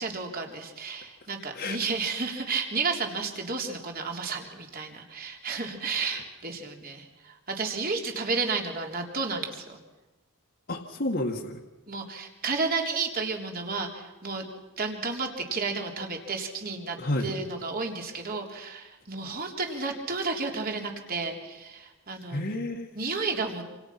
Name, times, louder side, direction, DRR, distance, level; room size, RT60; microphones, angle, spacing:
voice 1, 0.0-9.8 11.9-14.5 14.8-22.4 23.0-23.6, right 4 dB, 40° right, 2 dB, 3.8 m, -32 dB
voice 2, 10.7-11.6 17.0-17.4 22.3-23.1, left 1 dB, 45° left, -2 dB, 1.9 m, -31 dB
28.0 x 28.0 x 6.0 m, 1.1 s
head